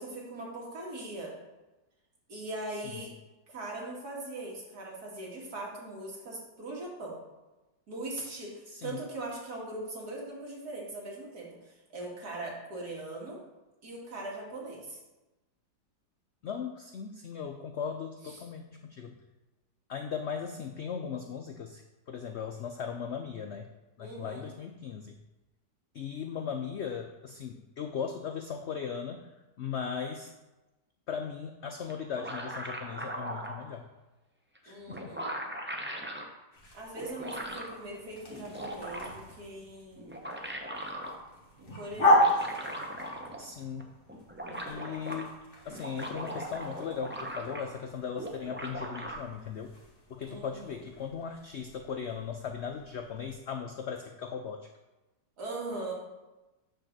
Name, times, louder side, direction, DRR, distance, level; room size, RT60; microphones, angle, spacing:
voice 1, 0.0-1.3 2.3-3.1 3.5-7.2 7.9-13.4 13.8-15.0 18.3-18.4 24.0-24.5 34.7-35.2 36.7-40.3 41.6-42.3 50.3-50.8 55.4-55.9, right 2 dB, 65° right, -3 dB, 2.5 m, -40 dB
voice 2, 8.7-9.0 16.4-19.2 19.9-23.7 24.0-25.2 25.9-29.3 29.6-30.3 31.1-33.9 34.6-35.2 43.4-43.9 44.7-49.8 50.1-54.7, left 7 dB, 85° left, 5 dB, 0.6 m, -38 dB
sound 1, 31.9-33.6 34.6-34.7 34.9-36.3 36.9-37.8 38.3-39.3 40.0-41.2 42.0-43.5 43.8-43.9 44.1-45.2 45.7-47.8 48.2-49.2, right 1 dB, 10° right, 0.5 m, -39 dB
sound 2, 36.5-53.3, left 1 dB, 35° left, 1.7 m, -35 dB
9.1 x 4.0 x 6.5 m, 1.1 s
omnidirectional pair, 1.8 m